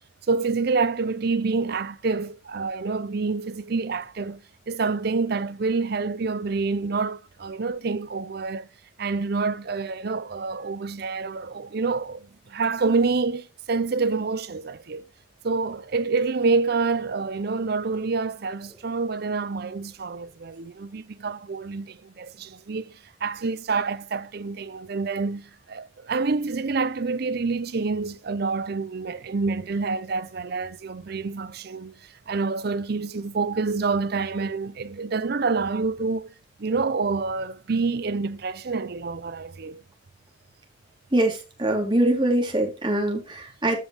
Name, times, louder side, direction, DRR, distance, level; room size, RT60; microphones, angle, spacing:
voice 1, 0.3-4.4 4.7-8.7 9.0-15.1 15.4-22.9 23.2-32.0 32.3-39.8, right 4 dB, 55° right, 0.5 m, -27 dB
voice 2, 41.1-43.8, right 1 dB, 25° right, 2.8 m, -23 dB
13.5 x 5.3 x 3.1 m
head